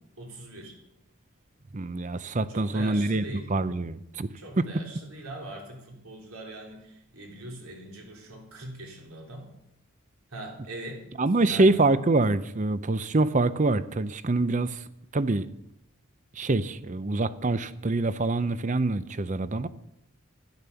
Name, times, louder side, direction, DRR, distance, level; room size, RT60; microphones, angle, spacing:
voice 1, 0.2-0.8 2.5-3.5 4.4-9.5 10.3-11.0 11.4-11.9, right 1 dB, 75° right, 3.5 m, -41 dB
voice 2, 1.7-3.2 3.5-4.3 11.2-14.8 15.1-15.5 16.4-19.7, right 2 dB, 35° right, 0.6 m, -25 dB
12.0 x 10.5 x 6.9 m
head